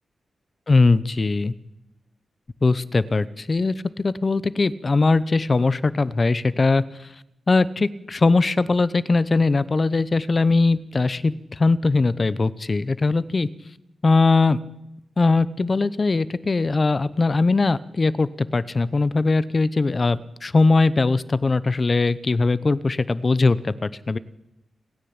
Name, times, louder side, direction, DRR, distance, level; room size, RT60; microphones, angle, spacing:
voice 1, 0.7-1.5 2.6-6.8 7.5-11.3 11.6-13.5 14.0-14.6 15.2-24.2, left 3 dB, 35° left, 16 dB, 0.8 m, -20 dB
29.5 x 10.0 x 8.8 m, 0.88 s
wide cardioid pair, 110°, 0 cm